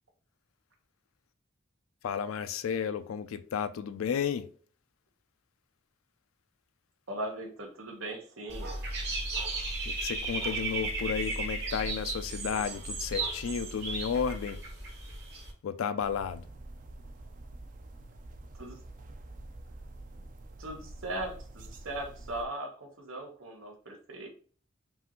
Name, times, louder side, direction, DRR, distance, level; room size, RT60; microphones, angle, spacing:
voice 1, 2.0-4.5 9.9-14.6 15.6-16.5, left 7 dB, 90° left, 0.4 m, -33 dB
voice 2, 7.1-8.7 18.5-18.8 20.6-24.3, right 1 dB, 90° right, 1.2 m, -39 dB
Dog / Bird, 8.5-15.5, right 3 dB, 55° right, 1.3 m, -35 dB
sound 1, 16.0-22.4, right 2 dB, 40° right, 0.4 m, -47 dB
5.5 x 2.6 x 2.9 m
head